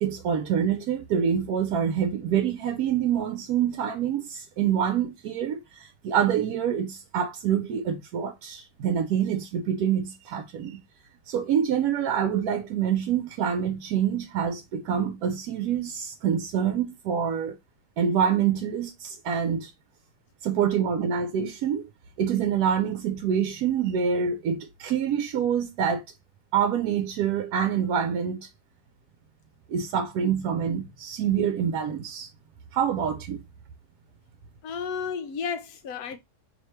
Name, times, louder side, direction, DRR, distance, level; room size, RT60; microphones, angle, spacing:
voice 1, 0.0-10.8 11.3-17.6 18.0-19.7 20.4-21.9 22.2-26.0 26.5-28.5 29.7-32.3 32.7-33.4, right 8 dB, 70° right, 1.0 m, -26 dB
voice 2, 34.6-36.2, left 6 dB, 70° left, 1.0 m, -32 dB
3.1 x 2.8 x 4.3 m
omnidirectional pair, 1.9 m